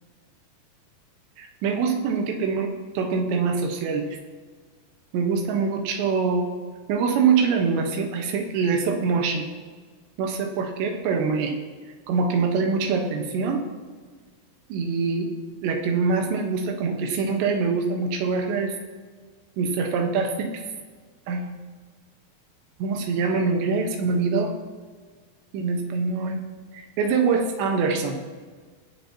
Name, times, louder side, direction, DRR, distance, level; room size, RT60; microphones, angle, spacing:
voice 1, 1.4-4.1 5.1-6.5 6.9-9.5 10.2-11.6 12.1-13.6 14.7-15.3 15.6-18.7 19.6-20.6 21.3-21.4 22.8-24.5 25.5-26.4 26.7-28.2, right 5 dB, 80° right, 4 dB, 3.4 m, -24 dB
20.0 x 8.1 x 2.9 m, 1.5 s
omnidirectional pair, 5.0 m